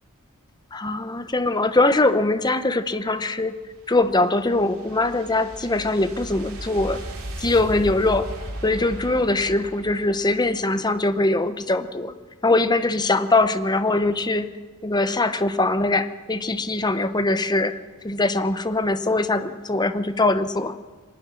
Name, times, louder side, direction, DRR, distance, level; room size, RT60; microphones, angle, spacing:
voice 1, 0.7-3.6 3.9-7.0 7.4-8.3 8.6-12.1 12.4-14.5 14.8-17.7 18.0-20.8, left 2 dB, 20° left, 11 dB, 0.8 m, -22 dB
sound 1, 3.5-10.8, right 1 dB, 65° right, 4.3 m, -36 dB
22.5 x 12.0 x 9.5 m, 1.4 s
head